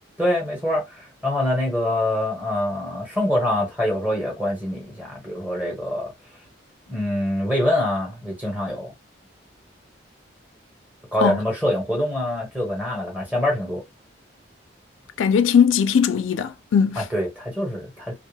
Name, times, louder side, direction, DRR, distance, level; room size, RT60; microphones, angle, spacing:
voice 1, 0.2-6.1 6.9-8.9 11.1-13.8 17.1-18.1, left 1 dB, 10° right, 1.1 m, -25 dB
voice 2, 15.2-17.0, left 7 dB, 85° left, 0.4 m, -19 dB
2.4 x 2.3 x 3.3 m
head